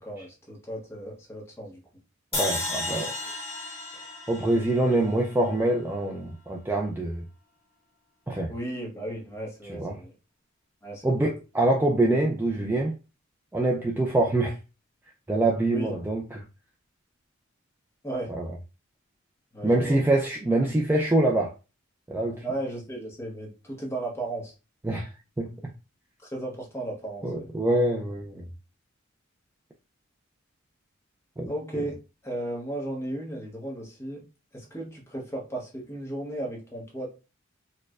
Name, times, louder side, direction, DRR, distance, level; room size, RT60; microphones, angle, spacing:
voice 1, 0.0-1.8 8.5-10.1 10.8-11.3 15.7-15.9 18.0-18.3 19.5-20.0 22.4-24.5 26.2-27.5 31.5-32.0 32.2-34.2 34.5-37.1, right 1 dB, 15° left, 0.9 m, -35 dB
sound 1, 2.3-5.5, left 2 dB, 30° left, 1.3 m, -33 dB
voice 2, 2.3-3.1 4.3-7.3 8.3-8.5 9.7-9.9 11.0-13.0 13.5-14.6 15.3-16.4 18.3-18.5 19.6-21.5 22.1-22.4 24.8-25.1 25.4-25.5 27.2-28.5 31.4-31.5, right 2 dB, 10° right, 0.3 m, -25 dB
4.5 x 2.1 x 2.3 m
head